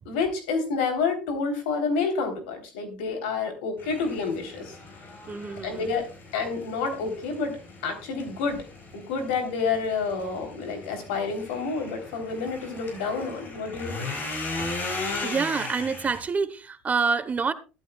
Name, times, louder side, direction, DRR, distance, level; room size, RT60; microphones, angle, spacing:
voice 1, 0.0-4.7 5.6-6.0 6.3-7.6 7.8-8.6 8.9-14.2, left 4 dB, 80° left, 3.4 m, -29 dB
sound 1, 3.8-16.2, left 3 dB, 40° left, 4.7 m, -38 dB
voice 2, 5.3-5.9 14.6-14.7 15.2-17.5, right 5 dB, 30° right, 1.0 m, -27 dB
14.0 x 12.0 x 2.3 m
hypercardioid pair, 80°, 5 cm